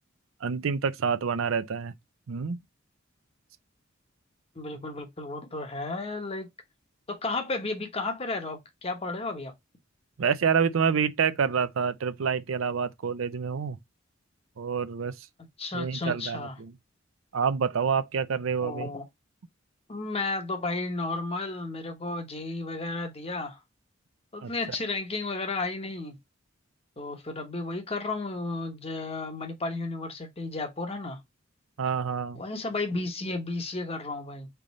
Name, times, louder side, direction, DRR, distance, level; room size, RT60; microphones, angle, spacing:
voice 1, 0.4-1.9 2.3-2.6 10.2-13.8 14.6-15.3 15.7-16.7 17.3-18.9 24.4-24.5 31.8-32.4, right 6 dB, 80° right, 0.5 m, -27 dB
voice 2, 4.6-6.5 7.1-9.5 15.6-16.6 18.6-19.0 19.9-23.6 24.3-26.2 27.0-31.2 32.3-34.5, left 3 dB, 30° left, 1.0 m, -33 dB
3.8 x 3.4 x 4.0 m
head